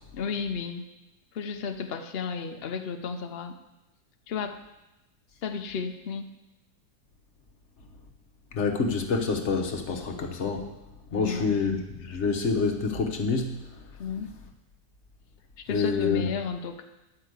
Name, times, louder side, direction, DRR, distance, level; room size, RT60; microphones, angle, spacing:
voice 1, 0.1-0.9 1.3-3.5 4.3-4.6 5.4-6.3 11.2-11.6 14.0-14.3 15.6-16.8, left 5 dB, 80° left, 6 dB, 0.5 m, -33 dB
voice 2, 8.5-10.7 11.1-13.6 15.7-16.2, left 4 dB, 45° left, 3 dB, 1.2 m, -27 dB
10.5 x 5.6 x 8.0 m, 0.98 s
omnidirectional pair, 1.9 m